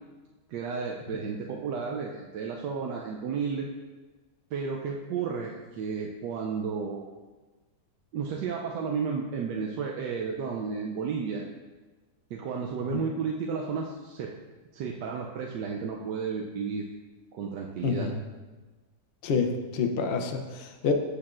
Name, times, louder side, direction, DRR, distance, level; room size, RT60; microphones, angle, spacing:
voice 1, 0.5-3.7 4.5-7.1 8.1-11.4 12.3-14.3 14.7-16.9 17.3-18.1, right 5 dB, 80° right, -1 dB, 1.2 m, -32 dB
voice 2, 17.8-18.2 19.2-20.9, left 5 dB, 70° left, 4 dB, 0.5 m, -28 dB
8.4 x 6.5 x 2.5 m, 1.3 s
omnidirectional pair, 1.8 m